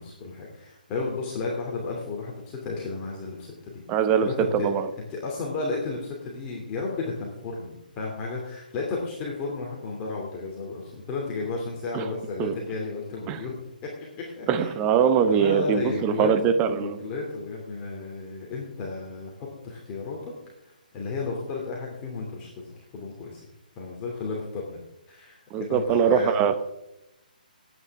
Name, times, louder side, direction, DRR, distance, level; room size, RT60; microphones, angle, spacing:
voice 1, 0.0-4.7 5.1-13.6 14.0-14.7 15.3-20.3 20.6-23.5 23.8-24.8 25.1-26.6, left 3 dB, 20° left, -3 dB, 2.7 m, -33 dB
voice 2, 3.9-4.9 11.9-12.0 12.4-12.5 13.3-13.4 14.5-17.0 25.5-26.6, right 7 dB, 20° right, 9 dB, 1.0 m, -22 dB
19.5 x 9.2 x 3.6 m, 0.90 s
figure-of-eight pair, 135°, 5 cm